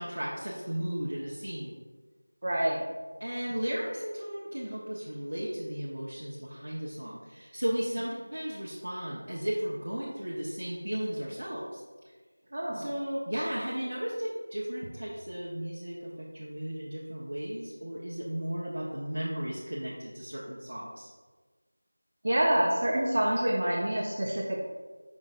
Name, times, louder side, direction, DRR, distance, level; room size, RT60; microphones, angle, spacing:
voice 1, 0.0-1.7 3.2-11.8 12.7-21.1, equal, 65° right, -6 dB, 1.2 m, -35 dB
voice 2, 2.4-2.8 12.5-12.9 22.2-24.6, right 1 dB, 25° right, -1 dB, 0.5 m, -27 dB
6.5 x 6.1 x 2.6 m, 1.4 s
figure-of-eight pair, 180°, 0 cm